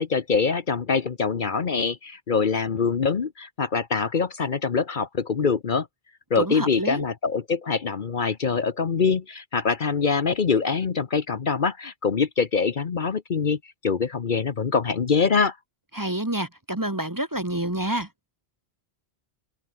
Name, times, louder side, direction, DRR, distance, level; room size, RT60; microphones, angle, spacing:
voice 1, 0.0-5.9 6.3-15.6, left 5 dB, 50° left, 1.1 m, -24 dB
voice 2, 6.3-7.1 15.9-18.1, right 1 dB, 20° right, 1.3 m, -28 dB
omnidirectional pair, 1.1 m